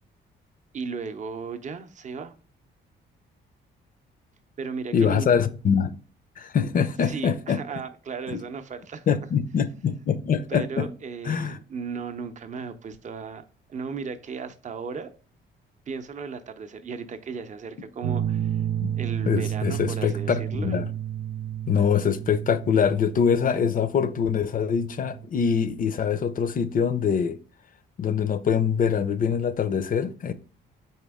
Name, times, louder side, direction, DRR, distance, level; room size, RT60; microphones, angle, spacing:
voice 1, 0.7-2.3 4.6-5.3 7.0-9.1 10.5-13.4 13.7-15.1 15.9-18.6 18.9-20.8, right 5 dB, 40° right, 0.6 m, -35 dB
voice 2, 4.9-5.9 6.4-7.6 8.3-8.4 9.1-10.9 11.3-11.6 18.8-18.9 19.3-20.9 21.7-27.4 28.0-30.3, left 7 dB, 45° left, 0.5 m, -24 dB
sound 1, 18.0-25.3, right 11 dB, 90° right, 0.5 m, -31 dB
4.3 x 3.4 x 3.5 m
cardioid pair, 90°, 20 cm